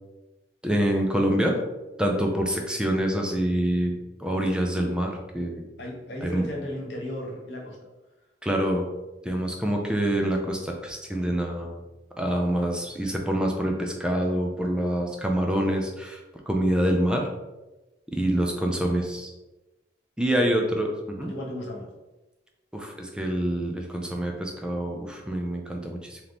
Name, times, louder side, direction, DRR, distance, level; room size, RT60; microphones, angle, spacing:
voice 1, 0.6-1.6 2.0-3.9 4.2-5.6 6.2-6.4 8.4-8.9 9.2-11.8 12.2-17.3 18.1-19.3 20.2-21.3 22.7-26.2, right 1 dB, 5° right, 1 dB, 0.4 m, -26 dB
voice 2, 5.8-7.8 20.5-20.7 21.2-21.9, equal, 70° left, -2 dB, 1.1 m, -35 dB
3.5 x 2.9 x 3.8 m, 1.1 s
head